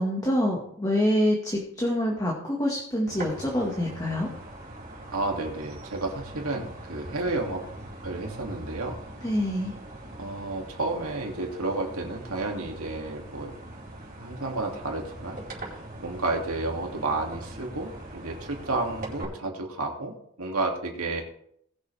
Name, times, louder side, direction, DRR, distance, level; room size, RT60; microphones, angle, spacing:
voice 1, 0.0-4.3 9.2-9.7, equal, 15° left, -2 dB, 1.7 m, -26 dB
sound 1, 3.1-19.2, right 1 dB, 40° right, 4.7 m, -42 dB
voice 2, 5.1-7.6 8.0-9.0 10.2-13.5 14.2-21.2, right 2 dB, 85° right, 1 dB, 2.6 m, -31 dB
20.0 x 6.9 x 3.5 m, 0.69 s
head